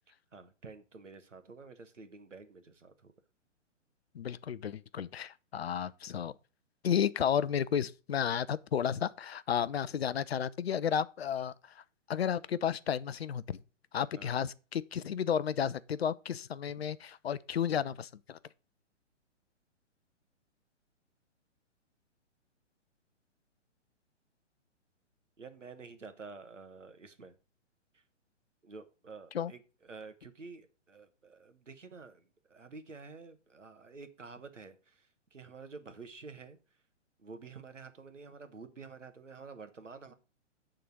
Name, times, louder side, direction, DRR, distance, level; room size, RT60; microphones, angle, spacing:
voice 1, 0.3-3.1 14.1-14.4 25.4-27.4 27.9-28.0 28.6-36.6 37.2-40.1, right 4 dB, 80° right, 1.3 m, -50 dB
voice 2, 4.1-6.3 6.8-11.8 12.1-13.6 13.9-18.4 29.3-29.5, left 8 dB, 55° left, 0.5 m, -32 dB
9.2 x 3.9 x 6.1 m
figure-of-eight pair, 125°, 37 cm